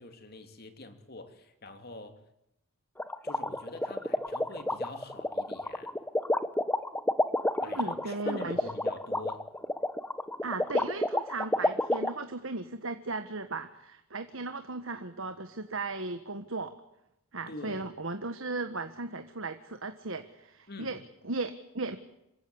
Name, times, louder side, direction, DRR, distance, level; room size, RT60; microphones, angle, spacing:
voice 1, 0.0-2.2 3.2-5.9 7.6-9.5 17.5-17.8 20.7-21.0, left 2 dB, 45° left, 7 dB, 3.0 m, -45 dB
sound 1, 3.0-12.1, left 1 dB, 10° left, 0.9 m, -29 dB
voice 2, 7.7-8.6 10.4-16.7 17.3-21.0 21.2-22.0, right 3 dB, 65° right, 8 dB, 1.5 m, -36 dB
27.0 x 16.0 x 9.9 m, 0.86 s
head